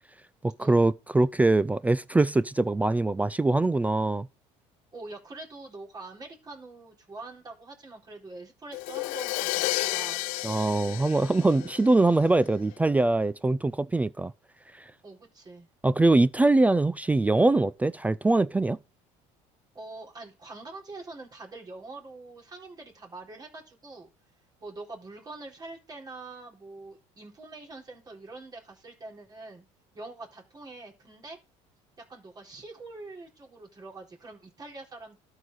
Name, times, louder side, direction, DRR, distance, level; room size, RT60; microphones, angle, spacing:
voice 1, 0.4-4.3 10.4-14.3 15.8-18.8, right 2 dB, 10° right, 0.3 m, -23 dB
voice 2, 4.9-10.2 15.0-15.7 19.7-24.1 24.6-29.6 29.9-31.4 32.0-35.2, right 3 dB, 30° right, 4.1 m, -44 dB
Crash cymbal, 8.7-12.5, left 22 dB, 80° left, 0.4 m, -32 dB
12.5 x 4.8 x 3.9 m
supercardioid pair, 105°, 14 cm